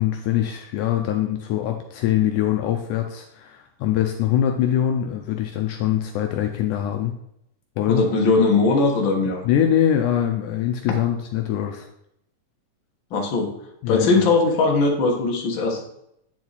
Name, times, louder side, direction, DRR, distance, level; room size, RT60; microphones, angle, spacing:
voice 1, 0.0-7.1 7.8-8.0 9.4-11.9 13.8-14.2, left 10 dB, 80° left, 4 dB, 2.0 m, -23 dB
voice 2, 7.9-9.4 13.1-13.5 13.9-15.8, left 3 dB, 50° left, 0 dB, 1.6 m, -19 dB
9.4 x 4.6 x 4.1 m, 0.75 s
omnidirectional pair, 3.8 m